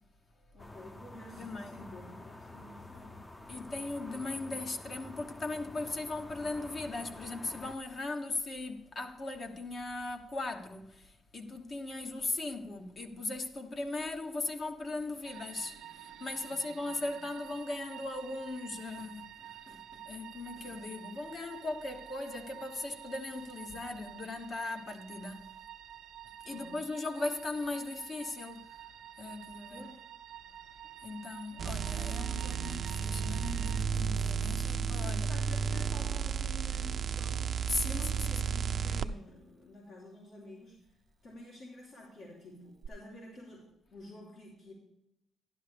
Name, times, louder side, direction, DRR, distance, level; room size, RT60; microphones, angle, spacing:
voice 1, 0.5-3.2 16.4-17.1 26.5-26.9 29.7-30.0 34.9-37.5 37.8-40.8 41.2-44.7, left 1 dB, 70° left, 3.4 m, -50 dB
sound 1, 0.6-7.8, left 2 dB, 20° left, 0.7 m, -49 dB
voice 2, 1.3-1.9 3.5-25.6 26.4-28.8 29.2-29.9 31.0-35.3 37.7-38.1, left 2 dB, 45° left, 1.2 m, -38 dB
sound 2, 15.2-33.8, right 11 dB, 85° right, 0.7 m, -50 dB
sound 3, 31.6-39.1 42.8-42.9, right 7 dB, 50° right, 0.5 m, -33 dB
12.0 x 10.5 x 3.4 m
cardioid pair, 90°, 0 cm